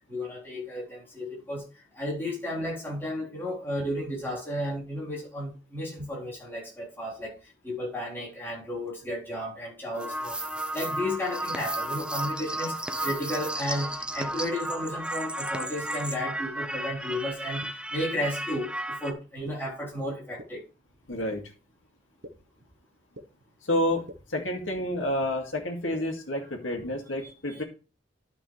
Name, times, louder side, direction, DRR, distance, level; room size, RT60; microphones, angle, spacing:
voice 1, 0.1-1.6 1.9-10.4 10.7-20.6 27.2-27.6, left 1 dB, 10° left, 3.7 m, -33 dB
sound 1, 9.9-19.1, right 1 dB, 5° right, 0.5 m, -33 dB
sound 2, 17.6-17.7 18.5-18.6 19.5-19.6 20.4-20.5 21.3-21.4 22.2-22.3 23.2-23.3 24.1-24.2 25.0-25.1 25.9-26.0, right 1 dB, 60° right, 1.1 m, -42 dB
voice 2, 21.1-21.4 23.6-27.6, left 1 dB, 70° left, 2.2 m, -29 dB
11.5 x 6.0 x 3.3 m
head